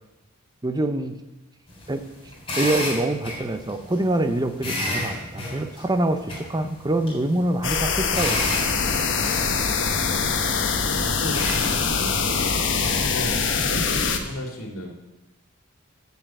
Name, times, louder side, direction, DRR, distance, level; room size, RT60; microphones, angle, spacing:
voice 1, 0.6-1.2 1.9-2.0 2.6-8.5, right 1 dB, 20° right, 8 dB, 0.6 m, -25 dB
sound 1, 1.7-13.1, left 1 dB, 25° left, 4.1 m, -33 dB
sound 2, 7.6-14.2, left 5 dB, 60° left, 1.0 m, -23 dB
voice 2, 10.7-14.9, left 1 dB, 75° left, 0 dB, 2.6 m, -35 dB
7.5 x 7.2 x 7.8 m, 1.0 s
head